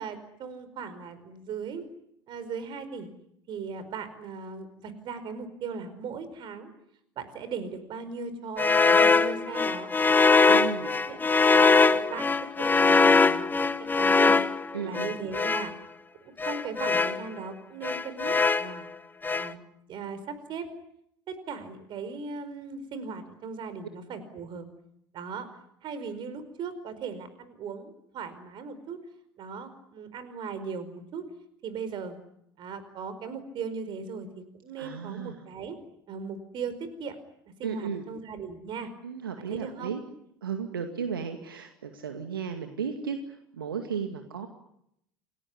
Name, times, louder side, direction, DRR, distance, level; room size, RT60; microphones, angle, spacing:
voice 1, 0.0-1.8 2.3-3.1 3.5-6.7 7.1-9.9 10.4-10.7 11.1-11.2 11.5-12.3 12.6-14.4 14.8-15.7 16.2-18.9 19.4-19.6 19.9-20.7 21.3-24.7 25.1-25.5 25.8-29.0 29.4-31.2 31.6-32.2 32.6-35.8 36.1-37.1 37.6-38.9 39.4-40.0, right 5 dB, 45° right, 12 dB, 4.9 m, -38 dB
sound 1, 8.6-15.7 16.4-17.2 17.8-18.8 19.2-19.5, left 4 dB, 15° left, 1.3 m, -22 dB
voice 2, 10.5-10.9 14.7-15.1 34.8-35.4 37.6-38.0 39.0-40.0 40.4-44.5, right 7 dB, 75° right, 6 dB, 2.2 m, -34 dB
28.5 x 19.0 x 9.8 m, 0.78 s
figure-of-eight pair, 70°, 12 cm